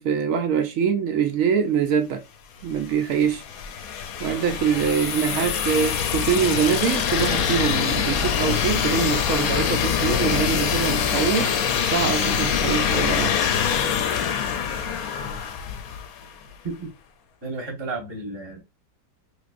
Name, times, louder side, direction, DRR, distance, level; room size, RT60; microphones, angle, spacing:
voice 1, 0.0-2.2 2.6-3.4 4.2-11.5 11.8-13.4, right 7 dB, 70° right, 0.8 m, -24 dB
sound 1, 2.7-16.4, left 7 dB, 70° left, 0.9 m, -24 dB
voice 2, 5.3-5.6 16.6-16.9 17.4-18.6, right 3 dB, 20° right, 0.9 m, -32 dB
3.5 x 3.1 x 2.5 m
omnidirectional pair, 1.8 m